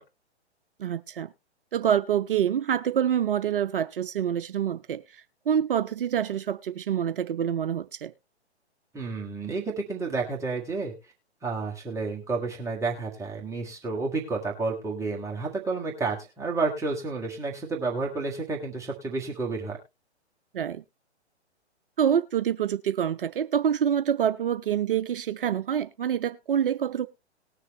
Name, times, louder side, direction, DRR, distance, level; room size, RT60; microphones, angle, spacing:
voice 1, 0.8-1.3 1.7-8.1 20.5-20.8 22.0-27.1, right 9 dB, 50° right, 0.6 m, -26 dB
voice 2, 8.9-10.9 11.4-19.8, right 3 dB, 10° right, 1.7 m, -30 dB
19.5 x 6.6 x 3.0 m
figure-of-eight pair, 125°, 34 cm